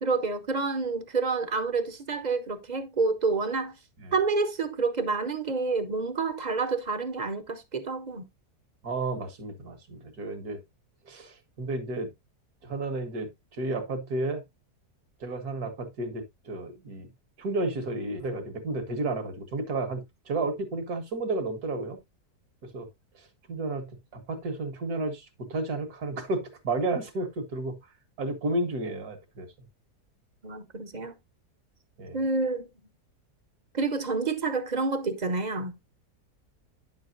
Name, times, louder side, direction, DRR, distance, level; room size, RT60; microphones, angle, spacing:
voice 1, 0.0-3.7 4.1-8.3 30.4-31.2 32.1-32.7 33.7-35.8, right 4 dB, 35° right, 0.9 m, -28 dB
voice 2, 8.8-10.6 11.1-12.1 12.6-14.4 15.2-17.1 17.4-22.0 22.7-22.9 23.5-25.3 25.5-27.8 28.2-29.5 32.0-32.2, right 2 dB, 70° right, 2.0 m, -32 dB
9.9 x 7.1 x 2.6 m
omnidirectional pair, 1.7 m